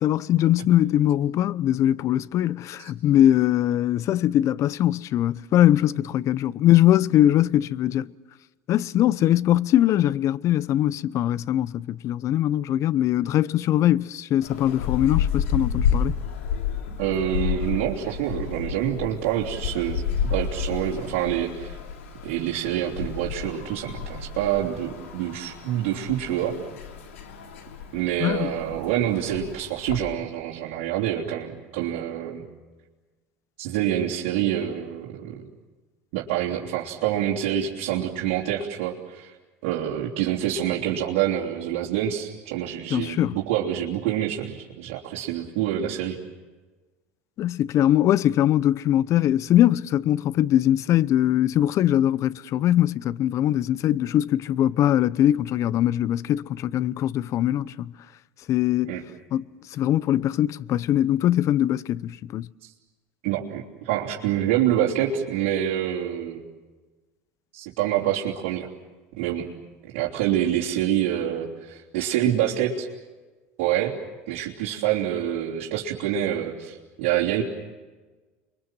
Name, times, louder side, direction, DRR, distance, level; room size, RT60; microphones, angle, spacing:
voice 1, 0.0-8.1 8.7-16.1 28.2-28.5 42.9-43.3 47.4-57.9 58.5-59.0 59.3-62.5, left 12 dB, 50° left, 0.7 m, -21 dB
sound 1, 14.4-30.0, left 7 dB, 85° left, 2.8 m, -31 dB
voice 2, 17.0-21.8 22.2-26.6 27.9-32.4 33.6-35.4 36.1-39.3 39.6-46.1 58.9-59.0 62.6-62.7 63.2-66.4 67.5-68.7 69.1-69.5 69.8-72.9 73.6-73.9 74.3-77.4, right 11 dB, 70° right, 3.2 m, -26 dB
30.0 x 23.0 x 7.6 m
hypercardioid pair, 90°, 7 cm